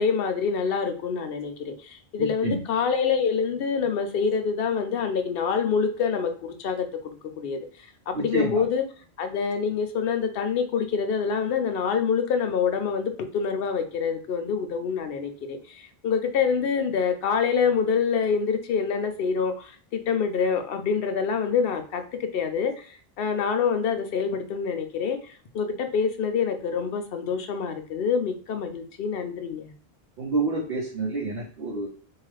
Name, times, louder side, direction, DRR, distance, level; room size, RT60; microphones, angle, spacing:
voice 1, 0.0-7.7 8.1-8.8 9.2-29.7, left 6 dB, 70° left, 0.7 m, -26 dB
voice 2, 2.2-2.6 8.1-8.6 30.2-31.9, right 3 dB, 70° right, 0.9 m, -28 dB
2.8 x 2.3 x 3.1 m
omnidirectional pair, 1.0 m